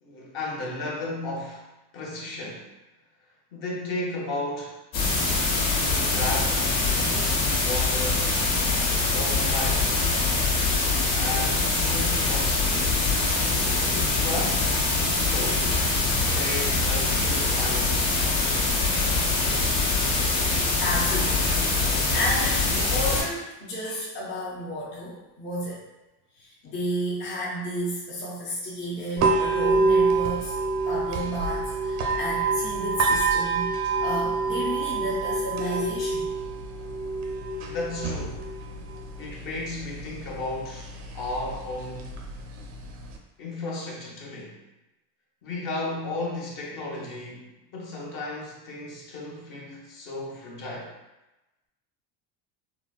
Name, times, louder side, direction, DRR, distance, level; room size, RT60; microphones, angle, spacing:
voice 1, 0.0-1.7 1.9-2.7 3.5-4.8 5.6-8.3 9.1-10.0 11.1-13.0 13.9-15.8 16.2-18.5 37.6-38.5 39.2-42.2 43.4-44.5 45.4-50.9, left 2 dB, 55° left, -3 dB, 1.0 m, -34 dB
sound 1, 4.9-23.2, left 3 dB, 85° left, 1.2 m, -24 dB
voice 2, 20.8-21.7 22.1-25.8 26.3-36.3, equal, 30° left, -6 dB, 0.5 m, -32 dB
sound 2, 29.2-43.2, right 3 dB, 45° right, 0.4 m, -27 dB
3.9 x 2.1 x 2.3 m, 1.0 s
cardioid pair, 145°, 39 cm